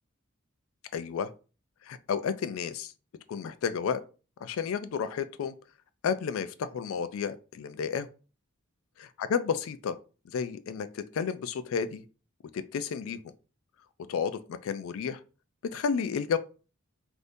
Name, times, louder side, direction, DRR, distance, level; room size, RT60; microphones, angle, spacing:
voice 1, 0.9-1.3 1.8-2.9 3.3-4.0 4.4-5.5 6.0-8.1 9.0-10.0 10.3-12.0 12.5-13.2 14.1-15.2 15.7-16.4, left 6 dB, 75° left, 0.3 m, -31 dB
3.5 x 2.6 x 2.6 m
head